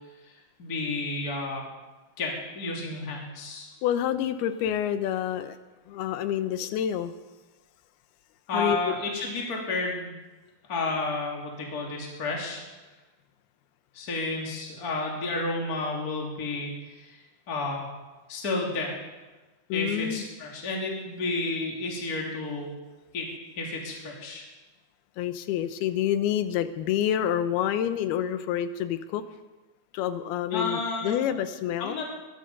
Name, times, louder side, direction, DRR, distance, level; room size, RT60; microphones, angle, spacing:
voice 1, 0.6-1.7 2.2-3.7 8.5-10.1 10.7-12.6 13.9-16.7 17.0-17.1 17.5-17.9 18.3-19.0 19.7-22.7 23.1-23.3 23.6-24.4 30.5-31.3 31.8-32.1, left 3 dB, 25° left, -1 dB, 2.6 m, -31 dB
voice 2, 3.8-5.6 5.9-7.1 8.5-8.9 19.7-20.2 25.2-29.2 29.9-32.0, left 10 dB, 80° left, 11 dB, 2.8 m, -28 dB
22.0 x 12.0 x 5.4 m, 1.2 s
omnidirectional pair, 4.5 m